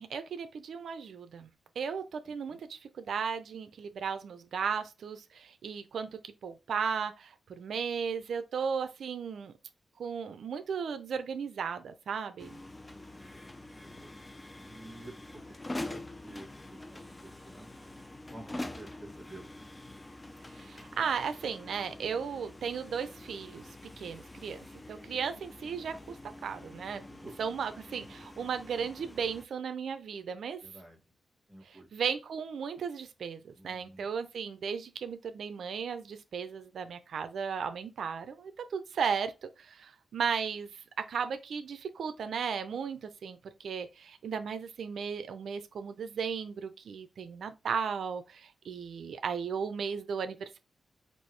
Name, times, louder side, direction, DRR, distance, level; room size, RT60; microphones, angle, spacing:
voice 1, 0.0-1.5 1.8-9.5 10.0-12.6 20.6-23.6 24.0-26.2 26.4-27.0 27.4-30.6 31.9-40.7 41.1-50.6, right 6 dB, 75° right, 0.6 m, -35 dB
sound 1, 12.4-29.4, left 2 dB, 20° left, 0.5 m, -45 dB
voice 2, 12.9-14.1 14.6-19.6 27.0-27.4 28.0-28.2 30.6-31.0 31.5-31.9 33.5-34.1, right 1 dB, ahead, 1.5 m, -51 dB
4.5 x 2.6 x 3.3 m
wide cardioid pair, 110°, 0 cm